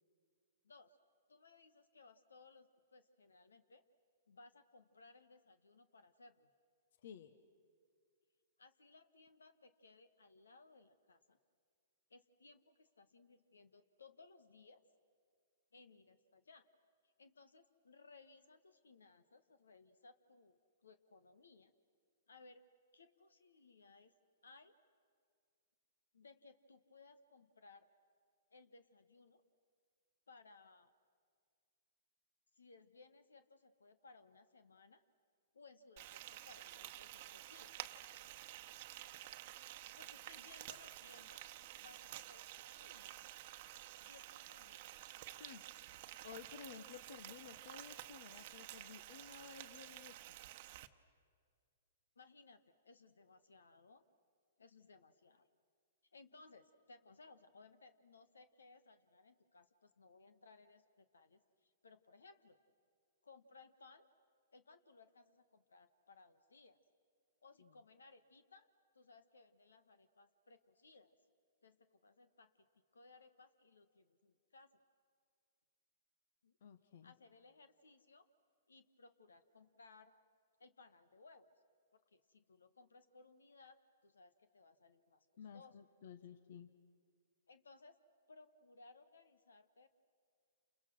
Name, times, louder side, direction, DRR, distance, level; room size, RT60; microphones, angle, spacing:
voice 1, 0.6-1.0 1.3-3.8 4.3-6.5 8.6-11.4 12.1-14.8 15.7-16.7 17.0-21.7 22.3-22.6 22.9-24.1 24.4-24.7 26.1-27.9 28.5-29.4 30.3-30.9 32.5-35.0 35.5-37.7 39.9-41.4 41.8-43.2 44.0-45.0 52.1-54.0 54.6-55.5 56.1-62.6 63.2-64.1 64.5-66.8 67.4-68.7 68.9-71.1 71.6-72.7 72.9-74.8 76.4-76.6 77.0-78.3 78.7-80.1 80.6-81.5 81.9-85.3 85.5-85.7 87.5-88.0 88.3-89.9, left 3 dB, 85° left, 11 dB, 1.5 m, -63 dB
voice 2, 7.0-7.3 45.4-45.6 46.2-50.4 67.6-67.7 76.6-77.1 85.4-86.7, left 7 dB, 65° left, 12 dB, 1.1 m, -54 dB
Frying (food), 36.0-50.9, right 15 dB, 50° right, 1.0 m, -52 dB
30.0 x 28.5 x 6.3 m, 2.2 s
hypercardioid pair, 120°, 0 cm